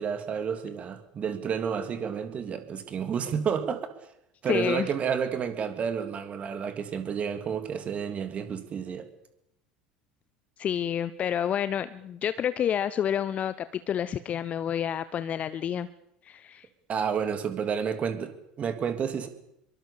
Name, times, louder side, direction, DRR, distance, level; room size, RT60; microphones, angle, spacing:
voice 1, 0.0-3.9 4.4-9.1 16.9-19.3, right 7 dB, 30° right, 8 dB, 3.1 m, -30 dB
voice 2, 4.5-4.9 10.6-15.9 16.2-16.7, left 9 dB, 35° left, 14 dB, 0.9 m, -29 dB
24.5 x 23.0 x 6.9 m, 0.80 s
figure-of-eight pair, 70°, 4 cm